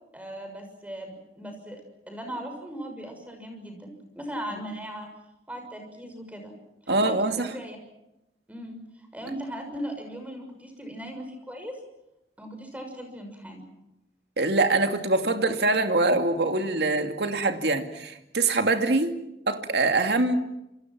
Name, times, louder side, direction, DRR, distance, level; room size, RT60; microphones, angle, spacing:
voice 1, 0.1-1.8 2.1-5.1 5.5-6.5 6.8-7.2 7.5-7.8 8.5-8.8 9.1-11.7 12.4-13.7, equal, 10° right, 4 dB, 6.5 m, -38 dB
voice 2, 6.9-7.5 14.4-19.1 19.5-20.4, right 2 dB, 65° right, 6 dB, 2.5 m, -24 dB
28.5 x 27.5 x 6.1 m, 0.89 s
head